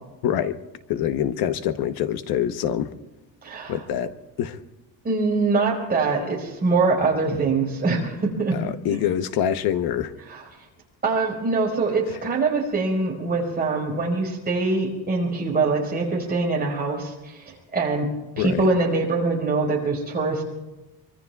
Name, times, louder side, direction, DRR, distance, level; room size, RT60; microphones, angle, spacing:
voice 1, 0.2-0.6 0.9-2.9 3.7-4.6 8.5-10.1 18.4-18.7, left 10 dB, 70° left, 11 dB, 1.0 m, -25 dB
voice 2, 3.4-3.8 5.0-8.6 8.9-9.0 10.3-10.4 11.0-18.1 18.4-20.4, right 3 dB, 25° right, -2 dB, 4.7 m, -23 dB
24.5 x 24.0 x 2.4 m, 1.0 s
cardioid pair, 165°, 38 cm